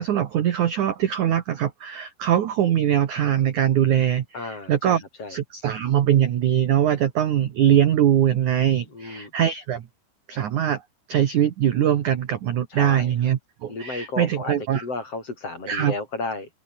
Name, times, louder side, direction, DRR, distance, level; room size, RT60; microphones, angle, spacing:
voice 1, 0.0-5.0 5.3-9.8 10.3-10.8 11.1-14.8 15.7-15.9, right 10 dB, 60° right, 2.2 m, -22 dB
voice 2, 4.3-5.4 8.9-9.3 12.7-13.1 13.7-16.5, left 3 dB, 30° left, 7.1 m, -33 dB
open air
omnidirectional pair, 5.2 m